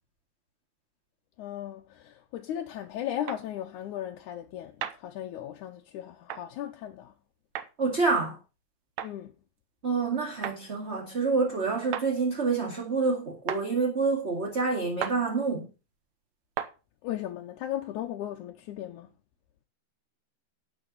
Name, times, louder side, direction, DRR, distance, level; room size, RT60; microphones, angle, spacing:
voice 1, 1.4-7.1 9.0-9.3 17.0-19.1, left 11 dB, 80° left, 2.3 m, -36 dB
sound 1, 3.3-3.4 4.8-5.0 6.3-6.4 7.6-7.7 9.0-9.1 10.4-10.6 11.9-12.1 13.5-13.6 15.0-15.2 16.6-16.7, right 10 dB, 70° right, 2.1 m, -33 dB
voice 2, 7.8-8.4 9.8-15.7, right 4 dB, 25° right, 2.0 m, -27 dB
12.5 x 8.9 x 4.1 m
omnidirectional pair, 3.5 m